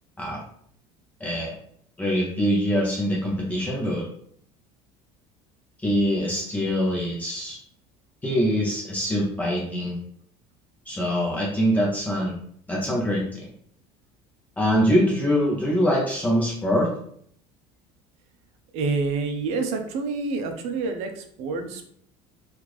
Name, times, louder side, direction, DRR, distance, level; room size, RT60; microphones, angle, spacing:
voice 1, 1.2-1.5 2.0-4.1 5.8-7.6 8.2-10.0 10.9-12.3 12.7-13.4 14.6-16.9, equal, 10° left, -4 dB, 0.6 m, -24 dB
voice 2, 18.7-21.9, right 4 dB, 60° right, 6 dB, 0.6 m, -28 dB
3.4 x 2.4 x 3.0 m, 0.65 s
cardioid pair, 155°, 13 cm